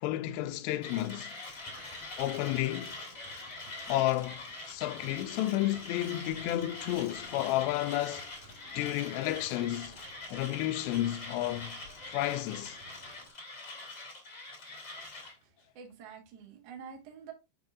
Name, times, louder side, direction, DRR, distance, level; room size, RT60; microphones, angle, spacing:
voice 1, 0.0-1.4 2.2-3.0 3.9-8.3 8.7-9.9 10.3-11.8 12.1-12.8, left 15 dB, 80° left, 2.5 m, -32 dB
Mechanisms, 0.8-15.4, left 2 dB, 50° left, 0.9 m, -44 dB
sound 1, 1.5-13.3, equal, 5° left, 3.6 m, -56 dB
voice 2, 15.7-17.3, right 7 dB, 65° right, 1.6 m, -47 dB
7.6 x 5.5 x 2.5 m
omnidirectional pair, 5.2 m